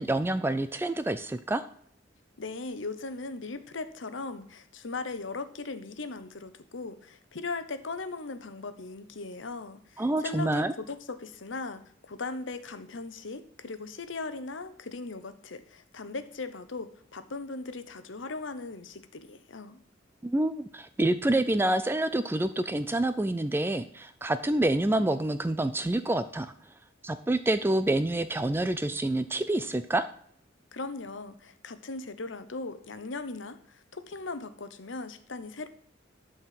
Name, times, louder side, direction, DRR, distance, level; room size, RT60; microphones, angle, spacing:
voice 1, 0.0-1.7 10.0-10.7 20.2-26.5 27.0-30.1, right 1 dB, 10° right, 11 dB, 0.4 m, -27 dB
voice 2, 2.4-19.8 30.7-35.7, left 3 dB, 75° left, 11 dB, 0.9 m, -38 dB
11.5 x 4.4 x 7.6 m, 0.63 s
head